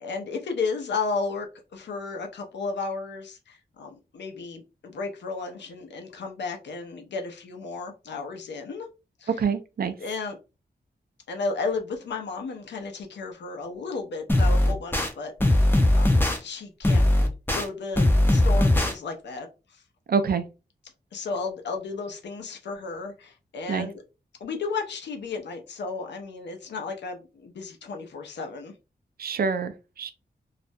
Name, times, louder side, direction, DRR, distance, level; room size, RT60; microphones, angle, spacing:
voice 1, 0.0-1.5 1.7-8.9 9.2-9.4 10.0-10.4 11.3-17.1 17.5-19.5 19.7-19.8 21.1-24.0 24.4-28.7, left 4 dB, 90° left, 0.6 m, -33 dB
voice 2, 9.4-9.9 20.1-20.4 23.7-23.9 29.2-30.1, right 5 dB, 60° right, 0.4 m, -26 dB
sound 1, 14.3-15.1 15.4-16.4 16.8-17.6 18.0-18.9, left 1 dB, 10° left, 0.5 m, -19 dB
2.4 x 2.1 x 2.6 m
wide cardioid pair, 80°, 18 cm